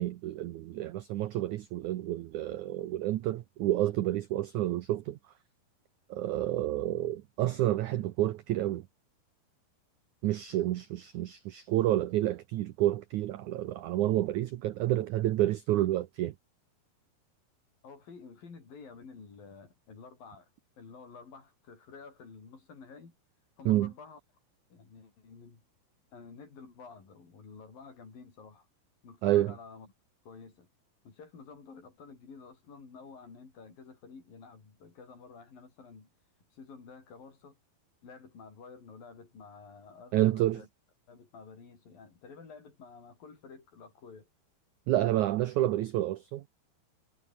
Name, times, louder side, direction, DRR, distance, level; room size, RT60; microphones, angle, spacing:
voice 1, 0.0-5.2 6.1-8.8 10.2-16.3 23.6-23.9 29.2-29.5 40.1-40.6 44.9-46.4, right 14 dB, 80° right, 1.7 m, -29 dB
voice 2, 17.8-20.5 20.8-23.2 23.6-24.2 24.7-25.6 26.1-28.7 29.0-29.9 30.3-30.7 31.0-36.1 36.5-37.6 38.0-40.7 41.1-44.3, left 5 dB, 60° left, 7.3 m, -50 dB
omnidirectional pair, 4.6 m